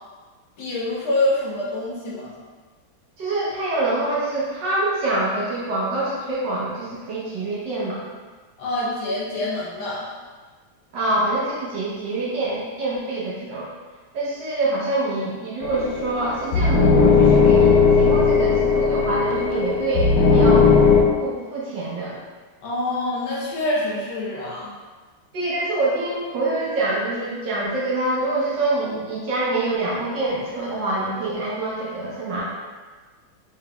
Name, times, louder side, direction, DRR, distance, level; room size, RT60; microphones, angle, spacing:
voice 1, 0.6-2.3 8.6-10.1 22.6-24.7, left 1 dB, 70° left, -5 dB, 1.6 m, -26 dB
voice 2, 3.2-8.0 10.9-13.7 14.1-20.7 21.2-22.2 25.3-32.4, right 2 dB, 65° right, -6 dB, 1.4 m, -25 dB
sound 1, 15.6-21.0, left 5 dB, 90° left, 0.8 m, -17 dB
4.9 x 3.8 x 2.2 m, 1.4 s
omnidirectional pair, 2.3 m